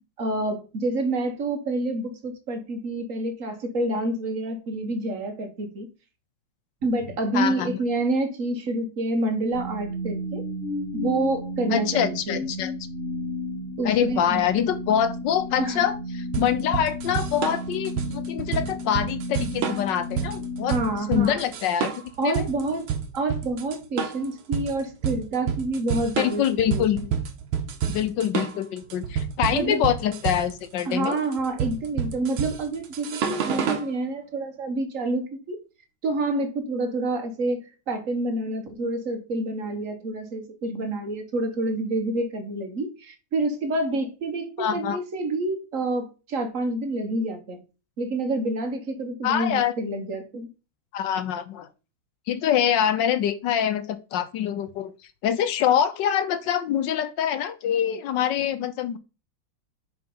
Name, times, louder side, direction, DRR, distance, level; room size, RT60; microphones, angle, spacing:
voice 1, 0.2-5.9 6.8-10.5 10.9-12.4 13.8-14.4 15.6-15.8 20.7-21.4 22.2-27.1 29.5-29.8 30.8-35.6 36.0-47.6 48.0-50.5, right 2 dB, 45° right, 1.4 m, -28 dB
voice 2, 7.3-7.8 11.7-12.7 13.8-20.8 21.1-21.9 22.2-22.5 26.2-27.0 27.9-31.2 44.6-45.0 49.2-49.7 50.9-51.7 52.3-54.9 55.2-59.0, left 9 dB, 70° left, 1.3 m, -25 dB
sound 1, 9.5-21.7, left 1 dB, 45° left, 1.4 m, -33 dB
sound 2, 16.3-33.9, right 7 dB, 85° right, 1.9 m, -29 dB
5.3 x 4.9 x 5.4 m
omnidirectional pair, 2.2 m